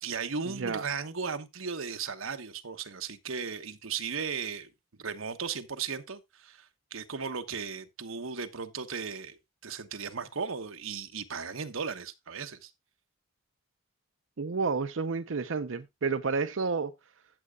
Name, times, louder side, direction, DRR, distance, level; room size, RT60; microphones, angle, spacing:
voice 1, 0.0-4.7 5.0-12.7, right 5 dB, 90° right, 1.1 m, -36 dB
voice 2, 14.4-16.9, right 4 dB, 70° right, 0.6 m, -30 dB
13.5 x 7.9 x 2.3 m
head